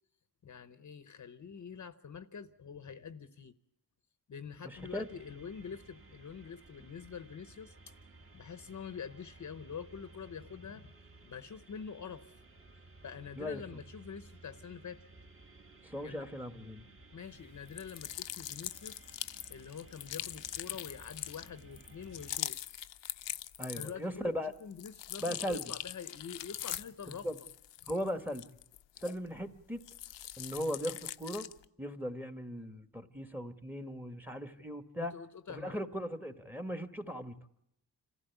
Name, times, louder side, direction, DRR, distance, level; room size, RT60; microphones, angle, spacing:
voice 1, 0.4-3.5 4.3-8.0 8.3-10.9 11.2-12.3 13.0-15.0 16.0-16.3 17.1-19.0 19.5-22.6 23.7-27.3 35.0-35.9, left 6 dB, 40° left, 12 dB, 0.8 m, -46 dB
voice 2, 4.6-5.1 13.4-13.6 15.8-16.9 23.6-24.5 25.2-25.6 27.1-27.4 27.9-28.5 29.0-29.8 30.4-31.5 31.8-35.1 35.5-37.3, equal, 5° right, 9 dB, 1.2 m, -38 dB
sound 1, 4.7-22.4, right 2 dB, 30° right, 1.7 m, -57 dB
sound 2, 17.7-24.2 24.5-29.4 29.8-31.6, left 12 dB, 90° left, 0.8 m, -42 dB
27.0 x 15.5 x 8.1 m, 0.79 s
wide cardioid pair, 175°, 43 cm